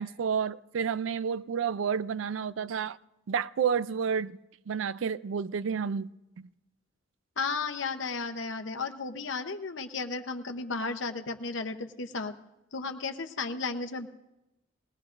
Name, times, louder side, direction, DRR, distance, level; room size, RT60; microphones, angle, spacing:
voice 1, 0.0-3.0 3.3-4.4 4.7-6.5, right 7 dB, 80° right, 0.4 m, -30 dB
voice 2, 7.4-12.3 12.7-14.1, left 4 dB, 70° left, 0.9 m, -34 dB
20.5 x 17.5 x 2.6 m
head